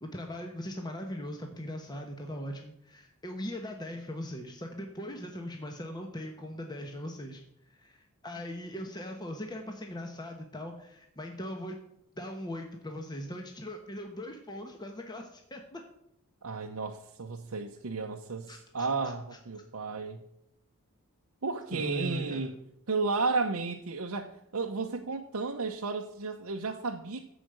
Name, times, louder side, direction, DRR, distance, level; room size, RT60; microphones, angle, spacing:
voice 1, 0.0-7.4 7.7-11.8 12.2-15.8 18.5-18.9 21.7-22.5, equal, 20° left, 3 dB, 1.1 m, -40 dB
voice 2, 16.4-20.2 21.4-22.5 22.9-27.2, right 4 dB, 75° right, 2 dB, 0.8 m, -33 dB
15.0 x 5.0 x 7.8 m, 0.79 s
head